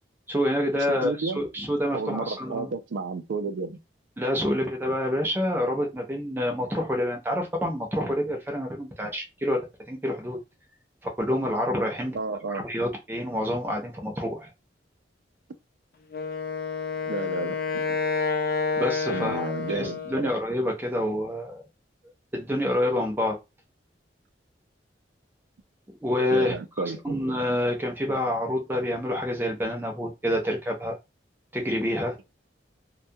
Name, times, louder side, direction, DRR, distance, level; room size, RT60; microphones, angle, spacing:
voice 1, 0.3-2.7 4.2-9.6 9.9-10.4 11.2-12.1 12.5-14.5 18.8-21.6 22.3-23.4 26.0-31.0 31.5-32.2, left 1 dB, 10° right, 0.6 m, -27 dB
voice 2, 0.9-1.4 1.9-3.8 12.1-12.7 17.1-18.0 19.1-20.3 26.3-27.2, right 4 dB, 80° right, 0.4 m, -32 dB
Wind instrument woodwind instrument, 16.1-20.4, left 5 dB, 55° left, 0.4 m, -29 dB
2.2 x 2.2 x 2.7 m
head